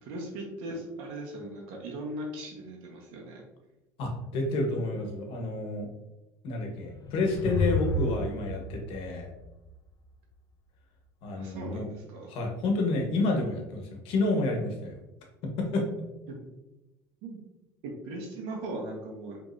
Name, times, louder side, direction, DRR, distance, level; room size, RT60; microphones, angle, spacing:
voice 1, 0.0-3.4 11.3-12.3 16.3-16.4 17.2-17.4 17.8-19.4, right 1 dB, 75° right, 0 dB, 1.2 m, -39 dB
voice 2, 4.0-5.9 6.4-9.3 11.2-11.9 12.3-15.0 15.4-15.9, left 2 dB, 70° left, 2 dB, 1.2 m, -29 dB
sound 1, 6.8-10.1, left 2 dB, 40° left, 0.5 m, -32 dB
5.0 x 3.4 x 2.6 m, 1.0 s
supercardioid pair, 85°, 10 cm